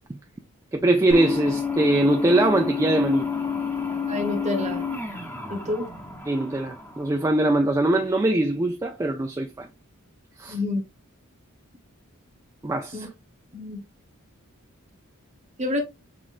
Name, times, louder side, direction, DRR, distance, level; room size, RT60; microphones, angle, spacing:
voice 1, 0.7-3.3 6.3-9.7 10.4-10.6 12.6-13.1, right 2 dB, 15° right, 0.3 m, -22 dB
sound 1, 1.1-7.5, left 5 dB, 10° left, 0.7 m, -30 dB
voice 2, 4.1-4.8 5.5-5.9 10.5-10.8 12.9-13.1 13.5-13.8 15.6-15.8, left 2 dB, 30° right, 1.0 m, -28 dB
5.8 x 2.4 x 2.5 m
head